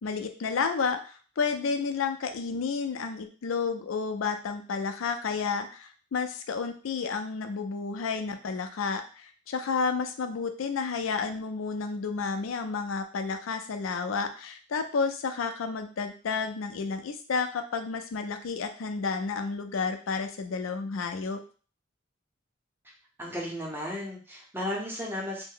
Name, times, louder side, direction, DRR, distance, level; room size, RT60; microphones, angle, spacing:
voice 1, 0.0-21.4, left 5 dB, 85° left, 7 dB, 0.4 m, -31 dB
voice 2, 23.2-25.4, left 1 dB, 10° right, -2 dB, 0.7 m, -34 dB
2.7 x 2.0 x 3.7 m, 0.39 s
head